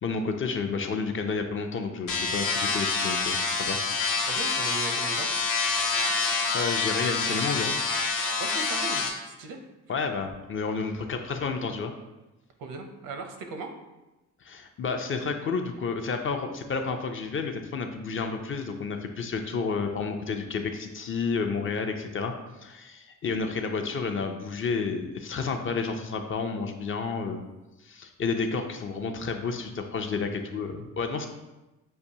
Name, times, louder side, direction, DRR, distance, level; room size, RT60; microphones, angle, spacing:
voice 1, 0.0-3.8 6.1-7.8 9.9-11.9 14.4-22.3 22.6-27.4 27.8-31.3, left 4 dB, 40° left, 5 dB, 0.4 m, -31 dB
sound 1, 2.1-9.1, left 4 dB, 70° left, 0.8 m, -27 dB
voice 2, 4.2-5.3 8.4-9.6 12.6-13.7, right 3 dB, 80° right, 5 dB, 0.7 m, -38 dB
6.5 x 2.6 x 2.7 m, 1.0 s
cardioid pair, 115°, 33 cm